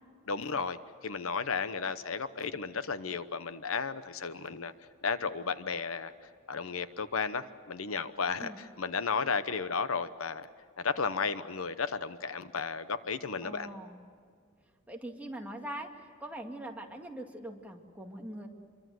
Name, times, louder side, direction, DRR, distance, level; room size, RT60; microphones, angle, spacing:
voice 1, 0.3-0.8 1.0-4.7 5.0-6.1 6.5-10.5 10.8-13.7, left 5 dB, 75° left, 12 dB, 1.0 m, -33 dB
voice 2, 13.4-14.0 14.9-15.9 16.2-18.5, right 1 dB, 5° right, 1 dB, 2.2 m, -42 dB
27.0 x 23.5 x 7.9 m, 2.1 s
head